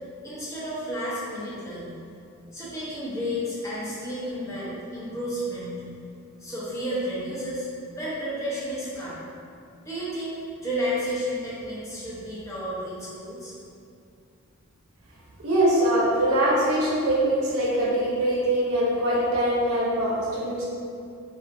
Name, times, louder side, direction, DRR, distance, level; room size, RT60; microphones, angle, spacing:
voice 1, 0.2-2.0 2.5-5.9 6.4-7.7 7.9-9.2 9.9-13.5, equal, 15° left, -10 dB, 0.6 m, -32 dB
voice 2, 15.4-20.6, right 1 dB, 75° right, -5 dB, 0.7 m, -23 dB
2.4 x 2.4 x 2.5 m, 2.5 s
head